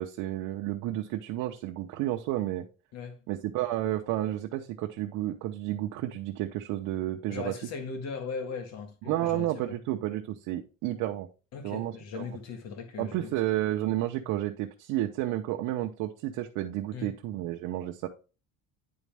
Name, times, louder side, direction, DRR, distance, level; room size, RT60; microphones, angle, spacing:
voice 1, 0.0-2.7 3.3-7.5 9.1-11.3 11.6-12.3 13.0-18.1, right 14 dB, 85° right, 0.8 m, -31 dB
voice 2, 7.3-9.8 11.5-13.3 16.9-17.1, left 5 dB, 60° left, 1.8 m, -38 dB
9.8 x 4.1 x 3.4 m
cardioid pair, 160°, 30 cm